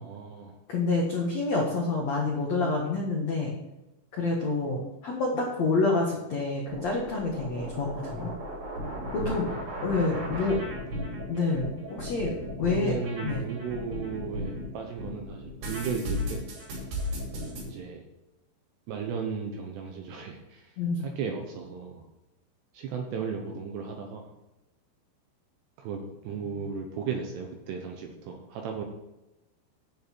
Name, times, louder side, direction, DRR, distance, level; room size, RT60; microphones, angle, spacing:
voice 1, 0.0-0.5 9.5-10.4 12.8-16.5 17.6-18.0 18.9-20.7 21.0-22.0 22.7-24.3 25.8-28.9, right 6 dB, 75° right, 3 dB, 2.6 m, -35 dB
voice 2, 0.7-3.5 4.1-8.3 9.1-9.5 9.8-10.6 11.3-13.5 20.8-21.0 26.4-26.6, left 3 dB, 80° left, -2 dB, 1.5 m, -28 dB
sound 1, 6.7-14.7 15.0-17.6, equal, 55° right, 4.9 m, -35 dB
9.3 x 8.3 x 4.5 m, 0.98 s
omnidirectional pair, 5.8 m